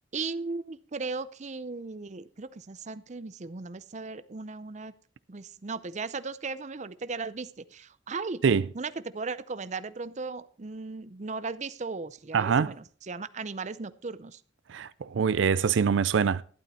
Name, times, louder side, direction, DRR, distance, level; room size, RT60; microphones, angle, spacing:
voice 1, 0.1-4.9 5.3-8.4 8.7-14.4, right 4 dB, 40° right, 0.6 m, -37 dB
voice 2, 12.3-12.7 14.7-16.4, right 6 dB, 85° right, 0.4 m, -24 dB
12.0 x 11.0 x 4.2 m
head